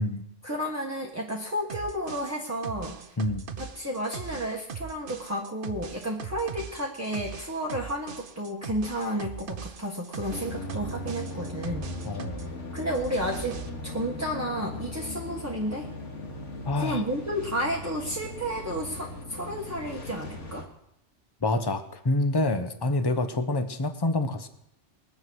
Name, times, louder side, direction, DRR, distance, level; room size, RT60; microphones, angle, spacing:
voice 1, 0.4-3.0 3.6-11.9 12.7-13.6 13.8-15.9 16.8-20.7, equal, 15° right, -1 dB, 1.3 m, -32 dB
sound 1, 1.7-12.5 12.8-13.7, right 6 dB, 50° right, 1.0 m, -40 dB
voice 2, 3.2-3.5 12.1-12.3 16.7-17.0 21.4-24.5, left 2 dB, 20° left, 8 dB, 0.9 m, -27 dB
sound 2, 10.3-20.6, left 2 dB, 90° left, 2.2 m, -38 dB
21.0 x 7.8 x 6.3 m, 0.81 s
omnidirectional pair, 1.2 m